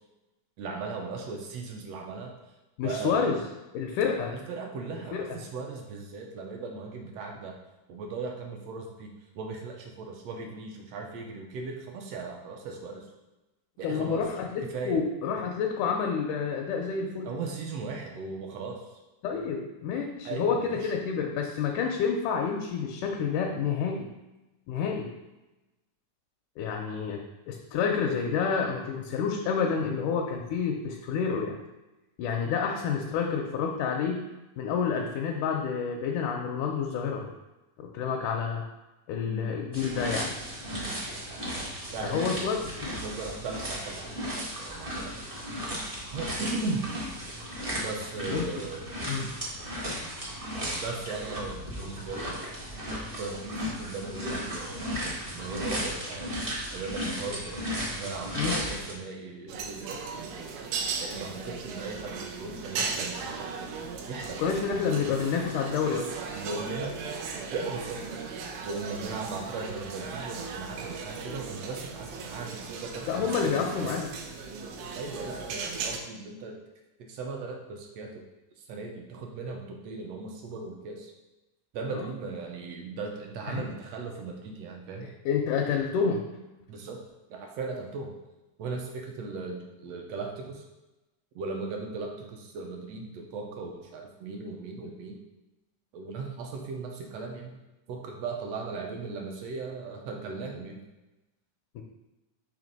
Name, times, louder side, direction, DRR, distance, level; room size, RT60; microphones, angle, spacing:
voice 1, 0.6-2.3 2.8-3.4 4.5-7.6 7.9-13.1 13.8-14.3 14.6-15.0 17.2-18.9 20.3-20.9 39.2-39.4 40.7-40.9 41.9-42.4 43.0-45.1 46.1-46.9 47.8-49.3 50.4-52.5 53.2-55.0 55.3-56.3 56.7-57.6 57.9-60.0 61.0-63.7 64.1-65.2 66.3-67.0 67.5-68.2 68.6-73.9 75.0-76.6 77.1-78.2 78.6-81.1 81.7-85.1 86.7-87.0 87.3-88.2 88.6-90.6 91.4-95.2 95.9-97.6 97.9-100.8, right 4 dB, 70° right, 1 dB, 1.6 m, -37 dB
voice 2, 2.8-3.4 3.7-4.3 5.1-5.2 13.8-17.3 19.2-24.1 24.7-25.1 26.6-27.2 27.5-31.6 32.2-34.2 34.6-37.3 37.8-38.6 39.1-40.3 42.1-43.0 48.2-48.5 49.0-49.3 58.4-58.6 64.4-66.1 73.1-74.1 81.9-82.1 83.5-83.6 85.0-86.2 101.8-101.9, left 6 dB, 85° left, 0 dB, 2.1 m, -29 dB
sound 1, 39.7-58.9, equal, 40° right, 0.7 m, -35 dB
sound 2, 59.5-76.0, right 4 dB, 90° right, 2.2 m, -37 dB
5.8 x 3.2 x 5.2 m, 1.0 s
omnidirectional pair, 3.5 m